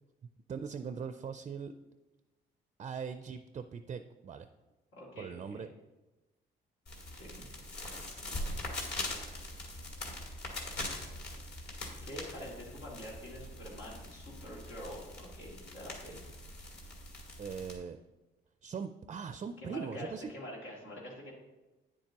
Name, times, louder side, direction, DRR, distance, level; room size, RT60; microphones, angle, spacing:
voice 1, 0.5-1.7 2.8-4.5 5.2-5.7 17.4-18.0 18.6-20.3, right 6 dB, 35° right, 9 dB, 0.4 m, -40 dB
voice 2, 4.9-5.7 7.1-7.5 12.0-16.2 19.6-21.3, equal, 90° left, -5 dB, 2.5 m, -46 dB
sound 1, 6.9-17.8, left 1 dB, 55° left, 2.1 m, -42 dB
9.6 x 7.4 x 2.9 m, 1.1 s
cardioid pair, 90°, 20 cm